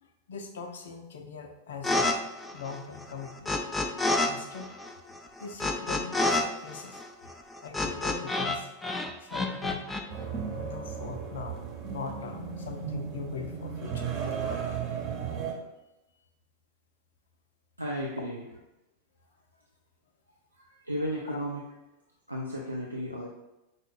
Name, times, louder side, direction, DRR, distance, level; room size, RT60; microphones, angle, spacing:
voice 1, 0.0-2.2 2.5-3.6 4.3-4.7 5.4-7.0 7.2-7.4 7.6-8.7 9.2-9.9 10.5-11.6 11.9-14.1 21.3-21.4, left 5 dB, 60° left, 5 dB, 0.5 m, -41 dB
sound 1, 1.8-2.1 2.4-4.3 4.5-8.6 8.8-10.0, left 2 dB, 10° left, 0.4 m, -28 dB
sound 2, 10.1-15.5, right 6 dB, 40° right, 0.8 m, -35 dB
voice 2, 17.8-18.4 20.5-21.6 22.3-23.3, equal, 85° right, -3 dB, 0.4 m, -34 dB
5.0 x 2.1 x 4.0 m, 0.96 s
figure-of-eight pair, 90°, 0 cm